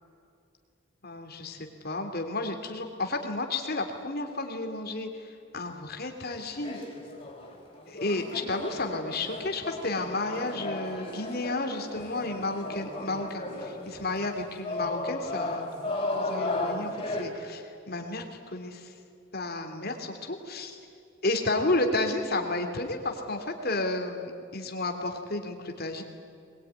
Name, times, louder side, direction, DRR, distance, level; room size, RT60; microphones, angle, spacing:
voice 1, 1.0-6.8 7.9-18.9 19.3-20.8 21.2-26.0, left 2 dB, 45° left, 4 dB, 2.9 m, -32 dB
sound 1, 6.3-17.2, left 2 dB, 25° left, 4.7 m, -35 dB
22.5 x 21.5 x 9.6 m, 2.5 s
head